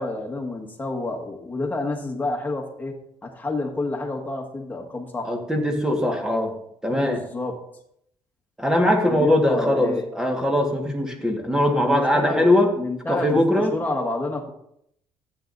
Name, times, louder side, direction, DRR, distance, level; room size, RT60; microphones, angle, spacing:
voice 1, 0.0-3.0 3.2-5.4 6.9-7.6 9.0-10.0 11.8-12.5 12.8-14.5, left 2 dB, 20° left, 0 dB, 1.6 m, -29 dB
voice 2, 5.2-6.5 6.8-7.2 8.6-12.7 13.1-13.7, left 1 dB, 5° right, 3 dB, 1.6 m, -21 dB
14.0 x 8.5 x 2.7 m, 0.75 s
cardioid pair, 110°, 10 cm